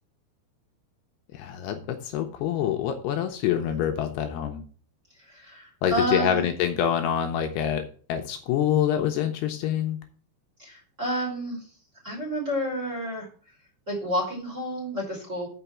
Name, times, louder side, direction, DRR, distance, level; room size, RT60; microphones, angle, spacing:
voice 1, 1.3-4.6 5.8-7.8 8.1-10.0, left 9 dB, 80° left, 5 dB, 2.7 m, -26 dB
voice 2, 5.2-6.4 10.6-11.7 12.0-13.3 13.9-15.5, equal, 20° right, -2 dB, 3.2 m, -30 dB
6.8 x 6.1 x 7.1 m, 0.41 s
omnidirectional pair, 5.0 m